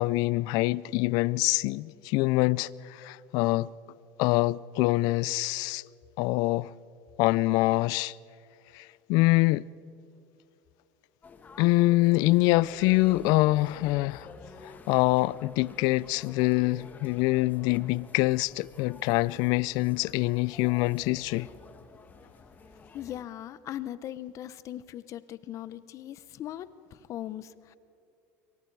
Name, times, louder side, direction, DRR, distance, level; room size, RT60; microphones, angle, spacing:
voice 1, 0.0-3.7 4.2-5.8 6.2-6.7 7.2-8.1 8.7-9.7 11.6-14.3 14.6-21.5, left 20 dB, 65° left, 0.5 m, -25 dB
sound 1, 11.2-23.2, left 4 dB, 25° left, 1.7 m, -51 dB
voice 2, 22.9-27.8, left 12 dB, 45° left, 0.8 m, -39 dB
28.0 x 24.5 x 4.7 m
supercardioid pair, 120°, 7 cm